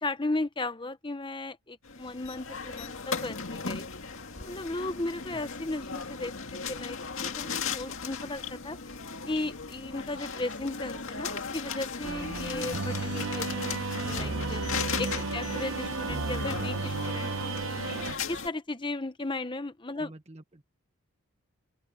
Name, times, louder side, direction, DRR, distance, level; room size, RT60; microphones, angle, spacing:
voice 1, 0.0-3.9 4.4-6.3 6.7-8.8 9.3-14.6 15.0-17.8 18.3-20.1, left 2 dB, 20° left, 0.9 m, -36 dB
sound 1, 1.8-18.5, left 5 dB, 60° left, 2.2 m, -37 dB
sound 2, 12.0-18.1, right 3 dB, 65° right, 1.2 m, -33 dB
voice 2, 15.3-15.8 19.9-20.6, right 1 dB, 30° right, 1.5 m, -49 dB
open air
head